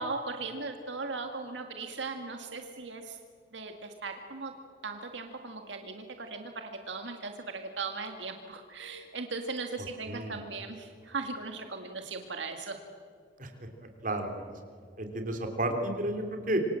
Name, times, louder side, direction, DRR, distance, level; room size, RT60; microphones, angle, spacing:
voice 1, 0.0-3.2 3.5-4.5 4.8-12.8, right 3 dB, 75° right, 5 dB, 2.0 m, -38 dB
voice 2, 10.1-10.4 13.4-13.5 14.0-14.5 15.0-16.6, right 1 dB, 45° right, 4 dB, 3.4 m, -32 dB
27.5 x 25.5 x 7.7 m, 2.1 s
head